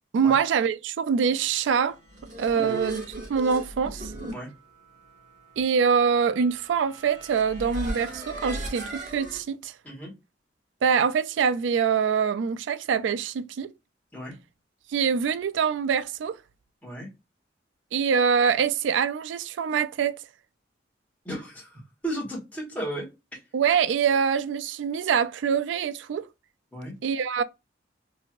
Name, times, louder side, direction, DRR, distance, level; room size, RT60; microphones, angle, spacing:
voice 1, 0.1-2.0 2.4-4.1 5.6-9.7 10.8-13.7 14.9-16.4 17.9-20.2 23.5-26.3 27.0-27.4, right 6 dB, 80° right, 0.3 m, -24 dB
sound 1, 1.9-9.4, right 1 dB, 45° right, 1.0 m, -37 dB
voice 2, 21.2-23.1 26.7-26.9, right 1 dB, 10° left, 1.3 m, -34 dB
3.0 x 2.7 x 2.4 m
head